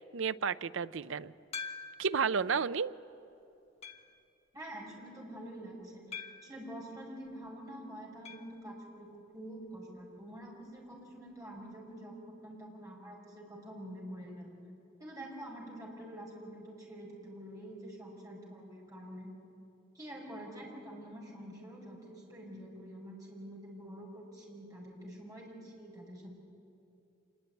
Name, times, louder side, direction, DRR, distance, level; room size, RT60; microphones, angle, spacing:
voice 1, 0.1-1.3 2.0-2.9, right 6 dB, 75° right, 14 dB, 0.6 m, -31 dB
sound 1, 1.5-2.2 2.8-2.9 3.8-4.2 6.1-6.6 8.2-8.5 8.8-8.9 9.2-9.3 11.3-11.4, left 5 dB, 30° left, 1.3 m, -44 dB
voice 2, 4.5-14.6 15.0-19.3 19.9-26.3, right 1 dB, 15° right, -2 dB, 5.6 m, -47 dB
26.0 x 21.5 x 9.3 m, 2.8 s
head